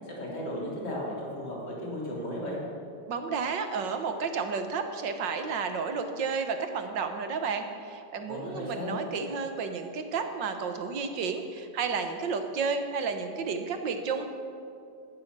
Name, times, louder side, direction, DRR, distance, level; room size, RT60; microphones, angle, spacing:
voice 1, 0.0-2.6 8.3-8.9, left 1 dB, 70° left, -4 dB, 4.1 m, -35 dB
voice 2, 3.1-14.3, right 5 dB, 85° right, 7 dB, 1.9 m, -32 dB
16.5 x 12.0 x 6.1 m, 2.4 s
omnidirectional pair, 1.9 m